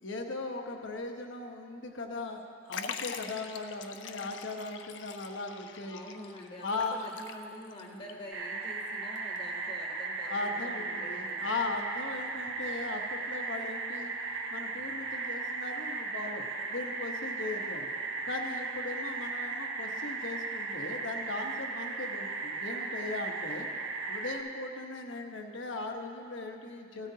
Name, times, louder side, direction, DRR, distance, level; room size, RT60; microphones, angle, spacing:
voice 1, 0.0-6.0 6.6-7.1 7.8-8.1 10.3-14.1 14.5-17.9 18.2-23.7 24.1-27.1, left 3 dB, 85° left, 3 dB, 1.1 m, -38 dB
Liquid, 2.7-7.8 8.1-8.2 9.1-9.2, left 7 dB, 70° left, 0.5 m, -43 dB
voice 2, 5.8-11.6, left 1 dB, 30° left, -2 dB, 1.0 m, -47 dB
sound 1, 8.3-24.4, right 3 dB, 80° right, 0.9 m, -36 dB
14.5 x 13.0 x 2.8 m, 2.4 s
head